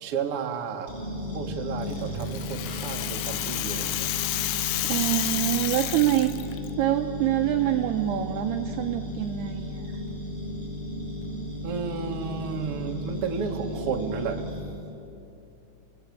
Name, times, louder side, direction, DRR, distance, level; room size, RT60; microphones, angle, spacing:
voice 1, 0.0-1.0 1.3-4.1 11.6-14.4, right 6 dB, 60° right, 2 dB, 1.4 m, -32 dB
sound 1, 0.9-14.6, left 1 dB, 10° right, 7.5 m, -35 dB
Rattle (instrument), 1.9-6.7, left 15 dB, 85° left, 3.3 m, -30 dB
voice 2, 4.9-10.0, right 13 dB, 80° right, 5 dB, 2.4 m, -26 dB
28.5 x 21.5 x 8.6 m, 2.8 s
omnidirectional pair, 5.5 m